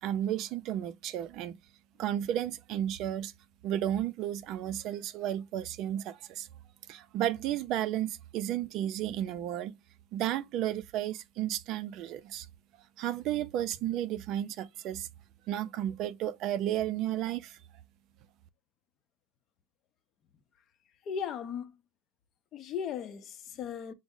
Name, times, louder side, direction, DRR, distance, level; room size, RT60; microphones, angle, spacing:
voice 1, 0.0-1.6 2.0-3.3 3.6-6.5 6.9-9.8 10.1-12.5 13.0-15.1 15.5-17.6, right 11 dB, 50° right, 0.4 m, -33 dB
voice 2, 21.1-21.7 22.5-23.9, left 7 dB, 40° left, 0.6 m, -36 dB
6.0 x 2.0 x 3.6 m
hypercardioid pair, 110°, 0 cm